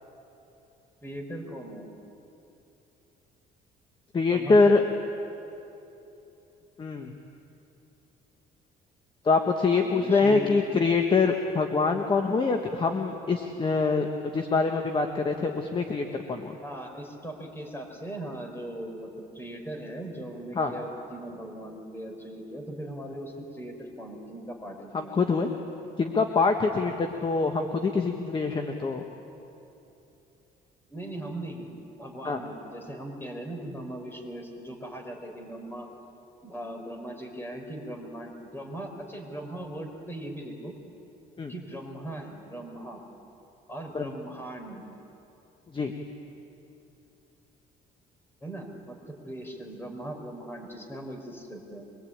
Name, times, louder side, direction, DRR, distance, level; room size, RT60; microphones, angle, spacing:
voice 1, 1.0-1.9 4.3-5.0 9.7-10.5 16.6-19.1 19.3-25.3 28.7-28.9 30.9-35.9 36.4-40.7 41.5-43.0 43.7-44.8 48.4-51.9, right 1 dB, 15° left, 3 dB, 4.8 m, -39 dB
voice 2, 4.1-4.8 6.8-7.2 9.2-16.6 20.5-20.7 24.9-25.5 26.0-29.0 32.2-32.4 41.4-41.5 43.9-44.1 45.7-45.9, left 4 dB, 30° left, 4 dB, 1.5 m, -24 dB
24.5 x 22.0 x 8.9 m, 2.9 s
cardioid pair, 110°, 17 cm